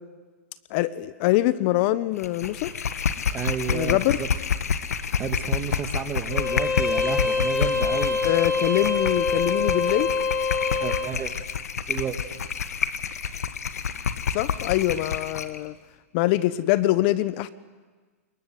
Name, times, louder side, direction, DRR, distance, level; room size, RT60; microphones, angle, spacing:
voice 1, 0.7-2.7 3.7-4.2 8.2-10.1 14.3-15.7 16.1-17.5, left 16 dB, 45° left, 17 dB, 1.0 m, -24 dB
sound 1, 2.2-15.6, left 7 dB, 80° left, 1.7 m, -29 dB
voice 2, 3.3-4.3 5.2-8.3 10.8-11.3 11.9-12.2, right 7 dB, 25° right, 8 dB, 2.4 m, -31 dB
Bowed string instrument, 6.3-11.1, left 4 dB, 30° left, 3.6 m, -25 dB
26.0 x 22.5 x 9.6 m, 1.4 s
hypercardioid pair, 120°, 8 cm